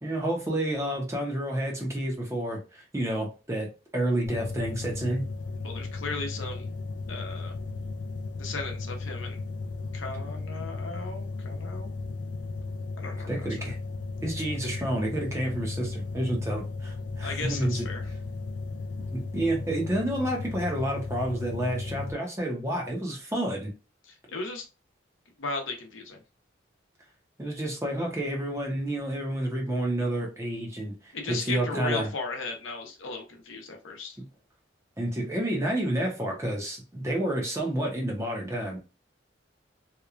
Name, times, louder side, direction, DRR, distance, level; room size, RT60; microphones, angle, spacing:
voice 1, 0.0-5.2 13.3-13.8 14.2-17.9 19.1-23.7 27.4-32.1 34.2-34.3 35.0-38.8, right 1 dB, 15° right, 0 dB, 0.6 m, -30 dB
sound 1, 4.3-22.1, left 3 dB, 65° left, 0.3 m, -35 dB
voice 2, 5.6-6.7 7.1-7.5 8.4-9.4 9.9-12.0 13.0-13.7 17.2-18.1 24.1-24.6 25.4-26.2 31.1-34.2, left 3 dB, 90° left, 3 dB, 0.7 m, -36 dB
2.9 x 2.2 x 2.4 m, 0.31 s
head